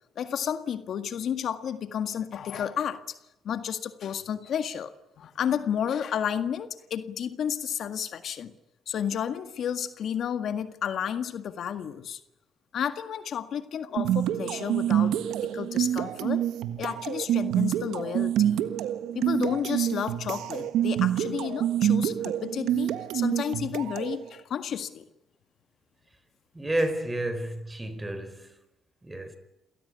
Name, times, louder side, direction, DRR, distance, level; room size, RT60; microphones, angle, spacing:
voice 1, 0.2-3.2 3.4-4.9 5.2-8.5 8.9-12.2 12.7-16.4 16.8-18.6 19.2-25.0, left 8 dB, 65° left, 1.8 m, -31 dB
sound 1, 14.0-24.2, right 11 dB, 85° right, 1.5 m, -27 dB
voice 2, 26.5-28.5 29.0-29.4, right 1 dB, 15° right, 4.4 m, -30 dB
28.0 x 18.0 x 9.7 m
cardioid pair, 90°, 0 cm